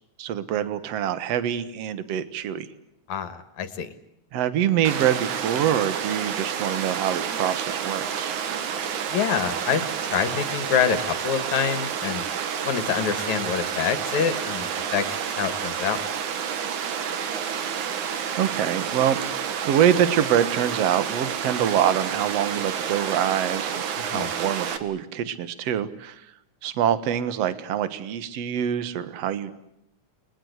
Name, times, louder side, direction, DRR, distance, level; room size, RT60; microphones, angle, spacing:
voice 1, 0.2-2.7 4.3-8.4 18.4-26.2 26.6-29.5, right 10 dB, 60° right, 13 dB, 2.3 m, -25 dB
voice 2, 3.1-3.9 9.1-12.2 12.6-15.0 15.4-16.0 24.0-24.3, left 8 dB, 75° left, 11 dB, 3.0 m, -26 dB
Water, 4.8-24.8, right 8 dB, 90° right, 3.2 m, -29 dB
29.5 x 21.5 x 8.1 m, 0.79 s
omnidirectional pair, 3.4 m